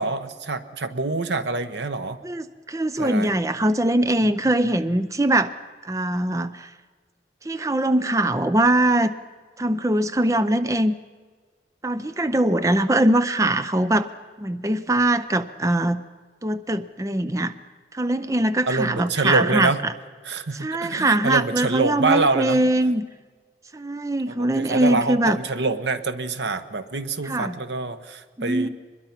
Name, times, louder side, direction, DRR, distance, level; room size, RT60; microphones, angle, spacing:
voice 1, 0.0-2.2 3.0-3.3 18.7-19.8 20.2-22.6 24.3-28.7, right 3 dB, 85° right, 11 dB, 1.1 m, -26 dB
voice 2, 2.2-5.5 5.8-6.7 7.5-9.1 9.6-10.9 11.8-14.1 14.4-16.0 16.4-17.5 17.9-19.9 20.5-23.0 23.7-25.4 27.3-27.5 28.4-28.7, right 1 dB, 20° right, 12 dB, 0.5 m, -22 dB
23.5 x 21.5 x 5.8 m, 1.5 s
head